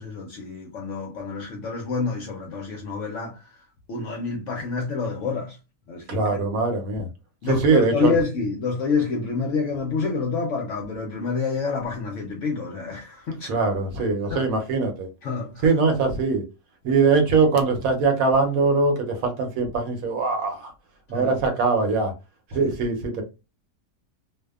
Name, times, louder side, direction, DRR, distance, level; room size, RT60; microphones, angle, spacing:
voice 1, 0.0-3.6 3.9-5.6 5.9-6.4 7.4-13.5 14.3-14.4 15.2-15.7 21.1-21.4 22.5-22.8, left 4 dB, 70° left, 0.7 m, -28 dB
voice 2, 6.1-7.1 7.5-8.1 13.5-15.1 15.6-16.4 16.8-20.7 21.1-22.1 22.5-23.2, right 4 dB, 70° right, 1.0 m, -22 dB
2.6 x 2.1 x 2.3 m
omnidirectional pair, 1.7 m